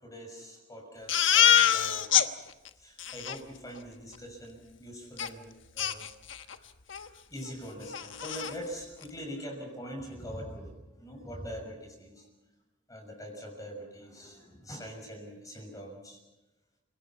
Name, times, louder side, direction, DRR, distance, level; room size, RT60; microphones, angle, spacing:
voice 1, 0.0-2.4 2.8-6.1 6.9-12.3 12.9-16.2, equal, 20° left, 2 dB, 6.2 m, -43 dB
Crying sobbing, 1.1-2.3 2.7-2.8 3.0-3.4 5.2-5.3 5.8-6.6 6.9-7.1 7.4-7.5 7.9-8.5, left 10 dB, 70° left, 1.3 m, -25 dB
29.5 x 19.0 x 5.8 m, 1.0 s
head